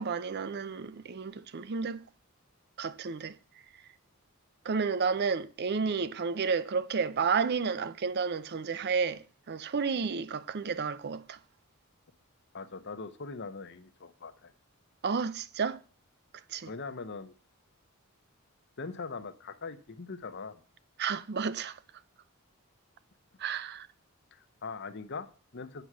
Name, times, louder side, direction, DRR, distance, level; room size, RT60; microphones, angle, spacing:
voice 1, 0.0-2.1 2.8-3.4 4.6-11.4 15.0-15.8 16.5-16.7 21.0-21.8 23.4-23.9, right 5 dB, 50° right, 0.5 m, -31 dB
voice 2, 12.5-14.5 16.7-17.3 18.8-20.6 24.3-25.8, left 4 dB, 50° left, 0.9 m, -41 dB
8.1 x 7.0 x 6.1 m
head